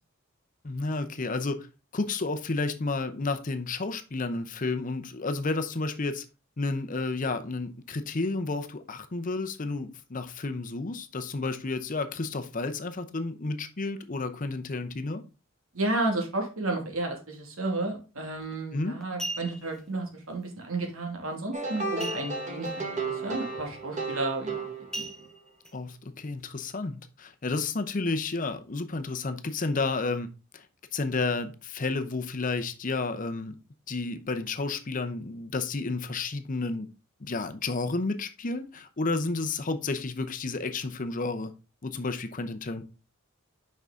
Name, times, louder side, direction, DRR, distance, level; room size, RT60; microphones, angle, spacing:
voice 1, 0.6-1.7 1.9-6.2 6.6-15.2 18.7-19.0 25.7-30.3 30.5-30.6 30.9-33.6 33.9-36.9 37.2-41.5 41.8-42.8, left 3 dB, 40° left, 0.7 m, -31 dB
voice 2, 15.7-25.1, right 2 dB, 85° right, 2.4 m, -32 dB
sound 1, 18.3-18.5 19.0-19.8 22.0-22.7 23.0-23.1 23.6-23.8 24.9-25.7 26.3-26.4, right 2 dB, 5° left, 0.8 m, -37 dB
sound 2, 21.5-25.3, right 3 dB, 35° right, 1.5 m, -34 dB
5.9 x 5.5 x 3.8 m
head